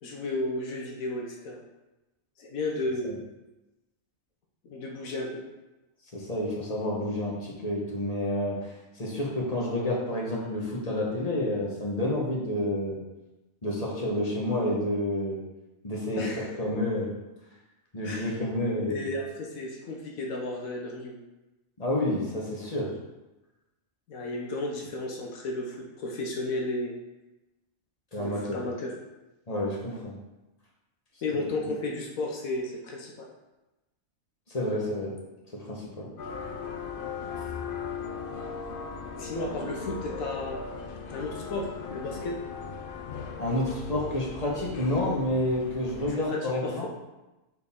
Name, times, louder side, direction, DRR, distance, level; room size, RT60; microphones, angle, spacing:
voice 1, 0.0-1.6 2.4-3.1 4.6-5.4 16.2-16.5 18.0-18.4 18.9-21.2 24.1-26.9 28.2-29.0 31.2-33.3 39.2-40.6 41.1-42.3 46.3-46.9, left 2 dB, 85° left, -1 dB, 1.4 m, -33 dB
voice 2, 6.1-13.0 13.6-15.4 15.8-17.1 17.9-19.1 21.8-22.9 28.1-28.6 29.5-30.1 31.5-31.7 34.5-35.2 35.5-36.1 43.4-46.9, left 1 dB, 30° left, -3 dB, 1.3 m, -29 dB
sound 1, 36.2-46.1, left 5 dB, 55° left, 0.7 m, -38 dB
6.3 x 4.4 x 3.6 m, 1.0 s
omnidirectional pair, 1.4 m